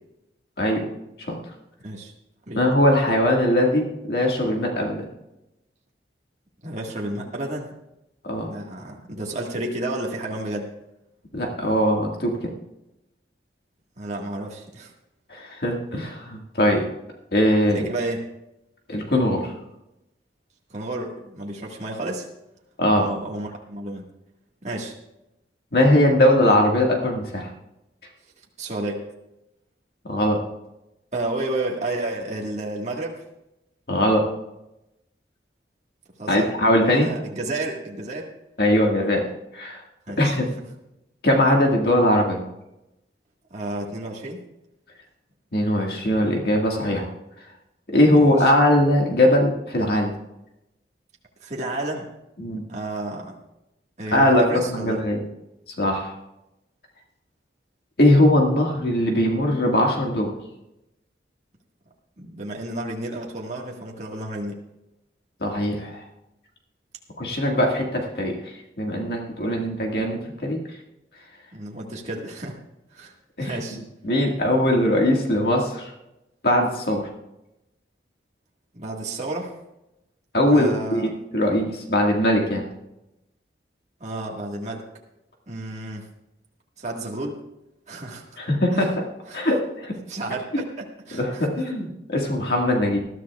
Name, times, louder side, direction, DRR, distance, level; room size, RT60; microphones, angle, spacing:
voice 1, 2.6-5.0 8.2-8.5 11.3-12.4 15.3-16.8 17.3-17.8 18.9-19.5 22.8-23.1 25.7-27.5 30.1-30.4 33.9-34.2 36.3-37.1 38.6-39.2 39.5-39.8 40.2-40.5 41.2-42.4 45.5-47.1 47.9-50.1 52.4-52.6 54.1-55.2 55.8-56.1 58.0-60.3 65.4-66.0 67.2-68.3 68.8-70.6 73.4-73.5 74.0-75.9 76.4-77.1 80.3-82.6 88.4-89.1 89.3-89.9 91.2-93.0, left 1 dB, 55° left, 0 dB, 1.8 m, -20 dB
voice 2, 6.6-7.7 8.4-10.7 14.0-14.9 17.7-18.3 20.7-22.3 23.0-24.0 24.6-24.9 28.6-29.0 31.1-33.2 36.2-36.5 36.9-38.3 40.1-40.4 43.5-44.4 48.1-48.5 51.4-52.1 52.7-53.4 54.0-55.0 62.2-64.6 69.6-69.7 71.5-72.6 72.9-73.1 73.4-73.8 78.7-79.5 80.5-81.1 84.0-84.8 85.5-86.1 86.8-87.4 87.9-88.2 88.7-88.9 89.3-89.5 90.1-90.6 91.1-91.7, right 2 dB, 40° right, -1 dB, 1.7 m, -31 dB
20.5 x 13.0 x 2.4 m, 0.90 s
head